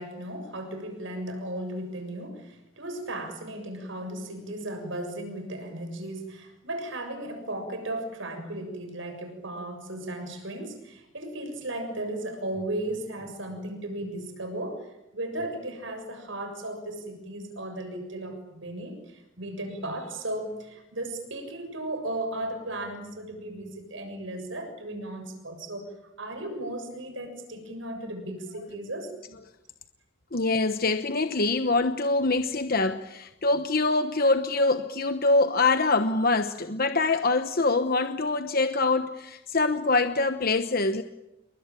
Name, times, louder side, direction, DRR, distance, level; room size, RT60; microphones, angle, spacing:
voice 1, 0.0-29.1, right 1 dB, 70° right, 6 dB, 6.9 m, -36 dB
voice 2, 30.3-41.0, left 3 dB, 45° left, 8 dB, 1.1 m, -24 dB
28.5 x 23.0 x 9.1 m, 0.95 s
head